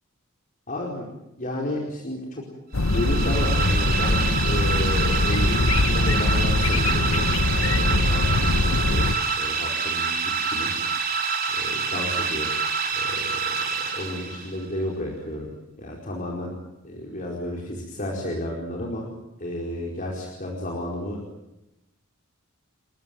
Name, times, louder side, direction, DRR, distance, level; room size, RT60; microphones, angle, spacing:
voice 1, 0.7-1.1 1.4-2.4 2.8-7.2 7.5-12.5 12.9-15.5 15.8-16.5 16.8-19.1 19.4-21.2, left 1 dB, 40° left, -1 dB, 4.6 m, -32 dB
sound 1, 2.7-9.2, left 2 dB, 70° left, 1.0 m, -22 dB
sound 2, 2.8-14.6, right 5 dB, 45° right, 4.9 m, -27 dB
30.0 x 16.5 x 9.4 m, 0.93 s
head